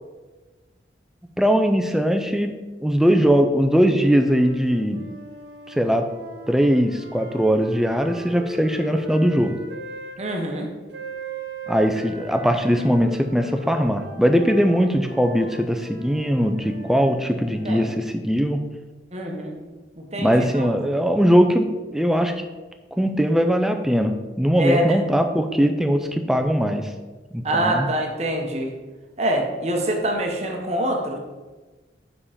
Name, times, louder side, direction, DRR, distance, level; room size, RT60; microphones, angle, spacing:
voice 1, 1.4-5.0 5.7-6.1 6.5-9.6 11.7-18.6 20.2-22.3 23.0-26.9 27.3-27.9, equal, ahead, 6 dB, 0.4 m, -20 dB
sound 1, 3.9-10.2 10.9-18.0, right 1 dB, 70° right, 0.9 m, -40 dB
voice 2, 10.2-10.7 17.6-17.9 19.1-19.6 20.0-20.7 24.6-25.1 27.4-28.7 29.2-31.2, right 1 dB, 35° right, 1 dB, 0.9 m, -25 dB
5.5 x 4.9 x 4.9 m, 1.2 s
head